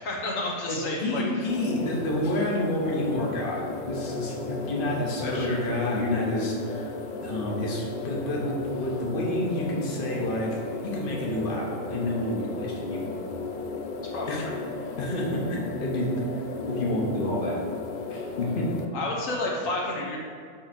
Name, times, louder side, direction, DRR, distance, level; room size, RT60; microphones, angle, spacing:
voice 1, 0.0-1.5 5.2-5.6 14.1-14.6 18.9-20.2, left 2 dB, 75° left, -2 dB, 1.3 m, -31 dB
voice 2, 0.7-6.9 7.2-13.0 14.3-14.4 15.0-16.4 16.7-17.6 18.1-18.7, left 1 dB, 45° left, -3 dB, 1.3 m, -29 dB
sound 1, 1.5-18.9, left 4 dB, 60° left, 0.5 m, -35 dB
6.0 x 3.9 x 6.0 m, 2.2 s
omnidirectional pair, 1.4 m